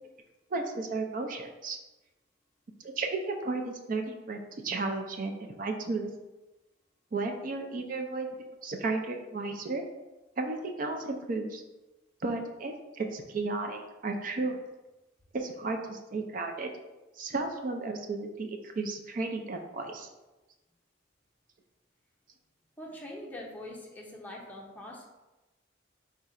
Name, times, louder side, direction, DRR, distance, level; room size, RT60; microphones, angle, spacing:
voice 1, 0.5-1.8 2.8-6.1 7.1-8.3 8.6-9.8 10.4-11.6 12.2-14.6 15.3-16.7 17.2-20.1, right 3 dB, 45° right, 4 dB, 0.4 m, -33 dB
voice 2, 22.8-25.0, left 1 dB, 10° left, -3 dB, 0.6 m, -43 dB
3.7 x 2.4 x 4.1 m, 1.1 s
head